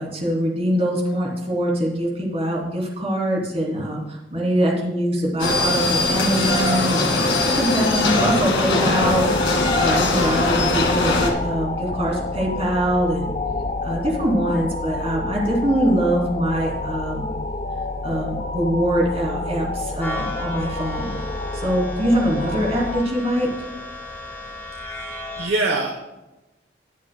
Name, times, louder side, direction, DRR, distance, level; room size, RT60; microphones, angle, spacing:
voice 1, 0.0-13.3 13.8-17.3 18.0-23.5, equal, 35° right, -2 dB, 2.9 m, -23 dB
sound 1, 5.4-11.3, left 2 dB, 90° left, 1.8 m, -20 dB
sound 2, 9.0-23.0, left 2 dB, 40° left, 0.5 m, -28 dB
sound 3, 20.0-25.5, left 2 dB, 10° left, 2.6 m, -35 dB
voice 2, 24.9-26.0, right 2 dB, 90° right, 2 dB, 1.0 m, -25 dB
20.0 x 7.4 x 2.2 m, 1.0 s
head